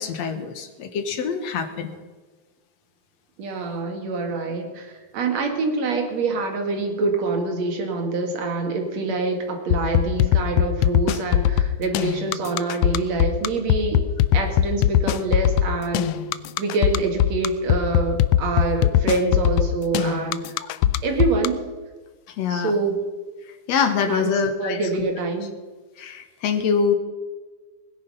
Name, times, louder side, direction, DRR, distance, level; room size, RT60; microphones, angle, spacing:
voice 1, 0.0-2.0 22.4-22.7 23.7-24.8 26.0-27.0, left 6 dB, 65° left, 8 dB, 2.2 m, -24 dB
voice 2, 3.4-14.1 14.3-16.1 16.6-20.5 21.0-21.7 22.5-23.0 24.1-24.3 24.6-25.5, right 3 dB, 60° right, 3 dB, 3.1 m, -25 dB
sound 1, 9.7-21.5, left 11 dB, 85° left, 1.4 m, -19 dB
20.0 x 10.0 x 5.5 m, 1.3 s
omnidirectional pair, 3.5 m